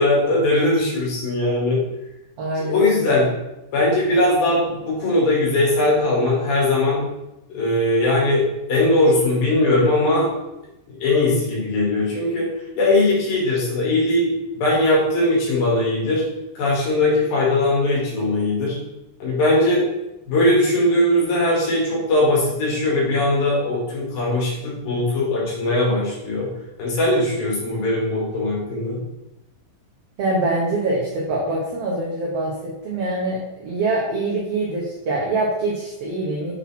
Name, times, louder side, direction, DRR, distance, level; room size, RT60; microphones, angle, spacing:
voice 1, 0.0-1.8 2.7-3.3 3.7-7.0 7.5-10.3 11.0-12.5 12.8-16.2 16.6-18.8 19.2-19.9 20.3-26.5 26.8-29.0, left 2 dB, 70° left, -4 dB, 3.9 m, -20 dB
voice 2, 2.4-2.9 30.2-36.5, right 2 dB, 80° right, -4 dB, 1.4 m, -24 dB
7.7 x 4.2 x 4.2 m, 0.91 s
omnidirectional pair, 4.5 m